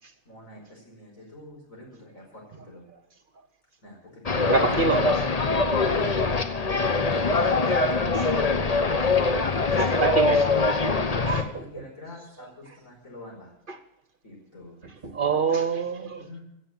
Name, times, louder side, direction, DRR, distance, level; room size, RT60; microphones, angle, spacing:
voice 1, 0.3-2.8 3.8-5.1 5.8-6.2 7.1-8.8 9.1-10.5 10.9-13.5 14.2-15.1 16.2-16.4, left 1 dB, 85° left, 5.3 m, -45 dB
sound 1, 4.3-11.4, left 3 dB, 30° left, 0.9 m, -23 dB
voice 2, 4.5-5.2 8.1-8.3 9.8-10.5 11.3-11.4 15.0-16.2, right 4 dB, 45° right, 1.1 m, -25 dB
16.0 x 7.3 x 9.2 m
omnidirectional pair, 1.4 m